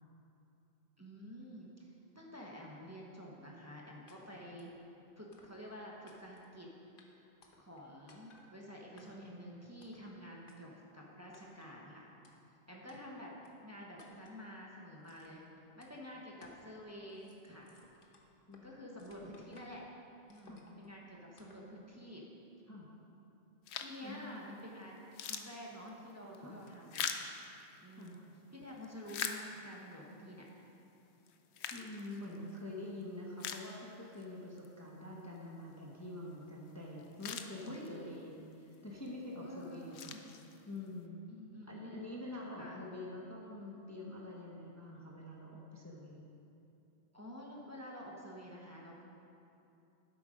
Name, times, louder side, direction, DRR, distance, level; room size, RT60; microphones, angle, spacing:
voice 1, 1.0-4.7 5.2-6.7 7.1-7.3 7.6-12.1 12.7-13.3 13.6-15.5 15.8-17.8 18.6-19.8 20.3-22.2 23.7-27.1 27.8-28.2 28.5-30.5 37.6-38.2 39.4-40.2 41.3-42.1 42.5-42.8 47.1-49.0, equal, 15° right, -3 dB, 1.2 m, -49 dB
sound 1, 4.1-4.2 4.6-4.8 5.3-5.7 6.1-6.5 7.0-7.1 7.4-7.8 8.1-8.5 9.0-9.3 9.8-10.1 10.5-10.6 11.3-11.7 12.2-12.3 12.9-13.0 13.4-13.5 14.0-14.4 15.0-15.5 15.8-15.9 16.4-16.7 17.0-18.7 19.0-19.9 20.3-20.9 21.4-21.7, left 3 dB, 50° left, 1.2 m, -62 dB
voice 2, 18.5-18.8 19.1-19.3 20.5-20.6 22.7-22.9 24.0-24.3 26.4-26.6 28.0-28.2 31.7-38.3 38.8-40.1 40.7-41.2 41.7-46.2, left 1 dB, 15° left, -3 dB, 1.0 m, -46 dB
sound 2, 23.7-24.1 24.6-24.7 25.0-28.2 28.7-29.9 30.5-30.6 31.3-32.6 33.0-33.1 33.4-34.2 34.6-34.7 36.7-36.8 37.0-38.1 38.7-39.1 39.6-40.9, left 7 dB, 75° left, 0.9 m, -43 dB
11.0 x 8.3 x 5.2 m, 2.8 s
omnidirectional pair, 1.2 m